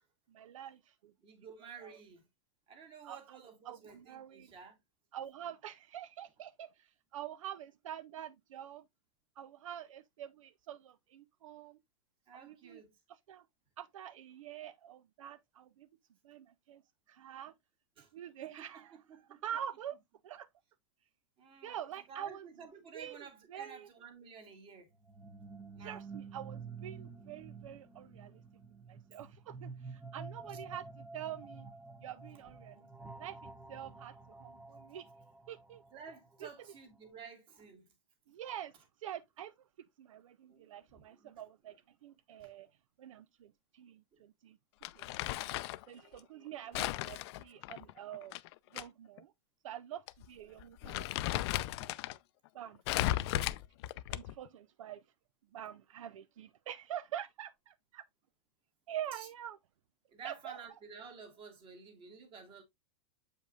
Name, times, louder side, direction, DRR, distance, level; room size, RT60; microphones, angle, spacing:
voice 1, 0.3-1.1 1.8-2.0 3.0-4.5 5.1-8.9 9.4-11.8 12.3-12.8 13.1-13.4 13.8-15.9 16.2-16.8 17.1-17.5 18.1-19.0 19.3-20.0 20.2-20.5 21.6-22.5 22.9-23.9 25.8-28.4 28.9-31.7 32.0-32.9 33.1-35.1 35.5-35.8 36.4-36.5 38.3-38.7 39.0-39.5 40.0-42.7 43.0-44.6 45.0-45.5 45.9-48.3 48.7-49.3 49.6-51.1 51.5-51.9 52.5-52.8 53.1-53.6 54.1-55.0 55.5-58.0 58.9-59.6 60.2-60.6, right 10 dB, 85° right, 0.6 m, -46 dB
voice 2, 1.2-2.2 2.7-4.8 12.3-12.9 18.0-18.1 18.4-19.4 21.4-21.8 22.1-24.9 25.8-26.0 33.0-33.1 35.9-37.9 40.4-41.3 44.1-44.2 53.2-53.3 59.1-59.3 60.1-62.6, right 5 dB, 30° right, 2.2 m, -52 dB
sound 1, 24.9-36.8, right 4 dB, 5° right, 0.8 m, -50 dB
Crumpling crinkling, 44.8-45.8 46.7-48.8 49.2-49.3 50.1-50.3 50.6-52.2 52.9-54.5, left 15 dB, 55° left, 0.5 m, -35 dB
7.6 x 5.2 x 2.4 m
supercardioid pair, 135°, 16 cm